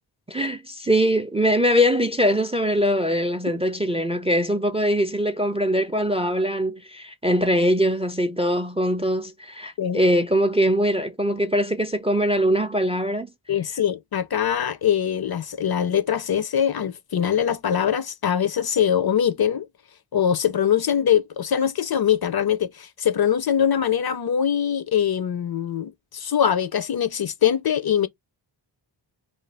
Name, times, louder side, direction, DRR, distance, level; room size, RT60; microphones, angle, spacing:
voice 1, 0.3-13.3, equal, 15° right, 0.3 m, -22 dB
voice 2, 13.5-19.7 20.1-28.1, left 9 dB, 55° left, 0.5 m, -22 dB
2.5 x 2.2 x 3.2 m
wide cardioid pair, 45°, 46 cm